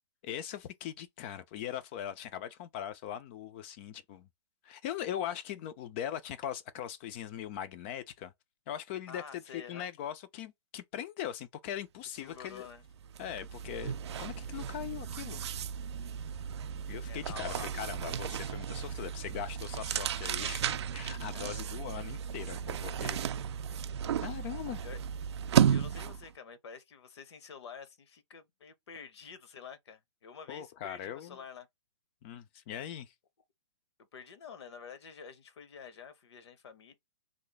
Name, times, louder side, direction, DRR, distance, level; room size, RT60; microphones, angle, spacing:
voice 1, 0.2-4.3 4.6-8.3 8.7-12.6 13.2-15.4 16.9-23.2 24.2-24.8 30.5-31.4 32.2-33.1, left 10 dB, 25° left, 0.3 m, -40 dB
voice 2, 9.1-9.9 12.2-12.8 17.0-17.7 21.3-21.8 22.8-22.9 24.8-25.0 25.7-31.7 34.1-37.0, left 7 dB, 65° left, 0.8 m, -48 dB
sound 1, 12.4-12.6 12.9-26.3, right 8 dB, 65° right, 0.4 m, -34 dB
3.2 x 2.0 x 3.8 m
hypercardioid pair, 160°, 15 cm